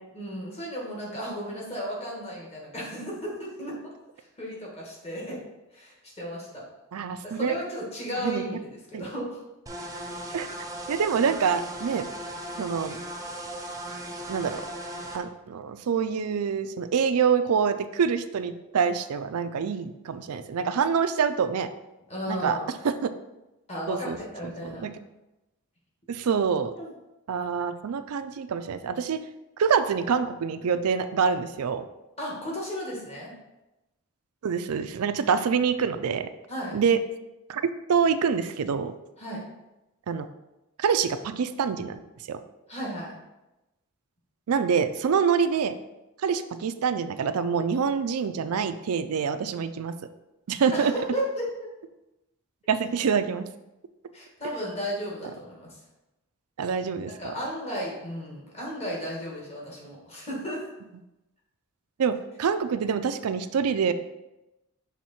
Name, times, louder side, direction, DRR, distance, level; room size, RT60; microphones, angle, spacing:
voice 1, 0.1-3.7 4.2-5.4 5.7-6.6 7.2-9.4 22.1-22.7 23.7-24.9 26.7-26.9 32.2-33.3 36.5-36.8 39.2-39.4 42.7-43.2 50.7-51.7 54.1-55.8 57.2-60.6, equal, 30° left, -3 dB, 1.6 m, -34 dB
voice 2, 6.9-7.6 8.2-8.4 8.9-9.1 10.3-10.5 10.9-12.1 12.6-13.0 14.3-14.6 15.1-21.7 22.3-22.6 22.8-23.1 23.9-24.2 24.6-24.9 26.1-26.7 27.3-29.2 29.6-31.8 34.4-36.3 36.7-37.0 37.5-37.6 37.9-38.9 40.1-40.3 40.8-42.0 42.3-42.4 44.5-45.7 46.2-49.9 50.5-50.9 52.7-53.4 56.6-57.1 62.0-63.9, right 6 dB, 85° right, 10 dB, 0.4 m, -26 dB
sound 1, 9.7-15.2, right 1 dB, 15° right, 0.6 m, -37 dB
6.2 x 3.6 x 4.3 m, 0.98 s
head